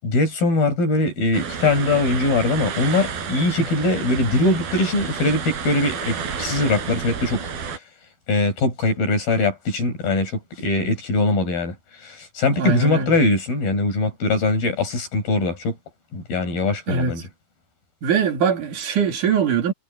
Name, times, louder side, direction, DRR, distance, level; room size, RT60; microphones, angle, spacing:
voice 1, 0.0-7.4 8.3-11.8 12.0-15.8 16.1-17.2, left 2 dB, 70° left, 8.7 m, -21 dB
sound 1, 1.3-7.8, right 6 dB, 80° right, 5.6 m, -30 dB
voice 2, 12.5-13.1 16.9-17.2 18.0-19.7, right 6 dB, 55° right, 4.2 m, -22 dB
omnidirectional pair, 4.4 m